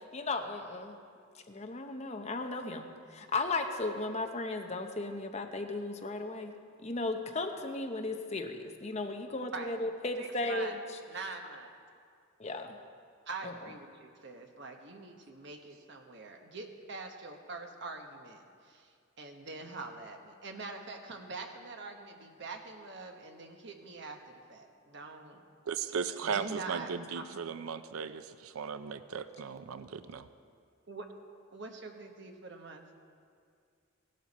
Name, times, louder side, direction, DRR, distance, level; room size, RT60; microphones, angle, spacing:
voice 1, 0.1-1.0 1.5-6.5 6.8-10.8 12.4-12.7, left 2 dB, 30° left, 5 dB, 0.8 m, -35 dB
voice 2, 10.2-10.8 11.1-11.7 13.3-24.2 24.5-25.3 26.2-27.5 30.9-31.1 31.5-32.9, right 3 dB, 55° right, 4 dB, 1.1 m, -44 dB
voice 3, 25.7-30.3, right 6 dB, 85° right, 12 dB, 0.5 m, -37 dB
17.0 x 12.0 x 4.2 m, 2.2 s
head